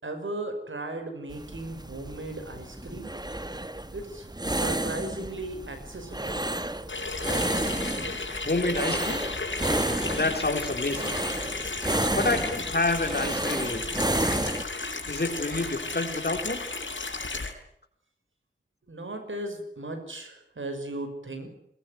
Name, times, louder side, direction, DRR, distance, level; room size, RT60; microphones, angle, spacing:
voice 1, 0.0-3.1 3.9-6.4 8.3-8.5 18.9-21.5, right 2 dB, 85° right, 6 dB, 5.7 m, -37 dB
sound 1, 1.3-14.6, right 1 dB, 20° right, 1.7 m, -31 dB
Water tap faucet / Sink (filling or washing), 6.9-17.5, left 3 dB, 80° left, 4.5 m, -34 dB
voice 2, 8.4-9.3 10.1-11.2 12.1-14.0 15.1-16.7, left 2 dB, 55° left, 5 dB, 4.0 m, -28 dB
22.0 x 20.0 x 9.4 m, 0.72 s
wide cardioid pair, 55°, 20 cm